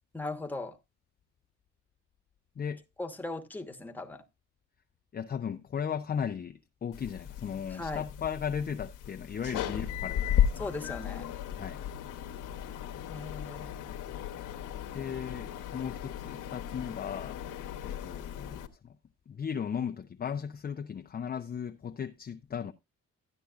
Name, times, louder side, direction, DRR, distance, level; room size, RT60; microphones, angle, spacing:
voice 1, 0.1-0.8 3.0-4.2 7.7-8.0 10.6-11.3 13.1-13.7, left 2 dB, 5° left, 1.1 m, -38 dB
voice 2, 5.1-10.9 11.6-11.9 14.9-17.4 17.8-18.7 19.3-22.7, left 7 dB, 30° left, 0.5 m, -36 dB
sound 1, 6.9-18.7, left 10 dB, 85° left, 1.0 m, -35 dB
13.0 x 9.7 x 2.4 m
cardioid pair, 90°, 30 cm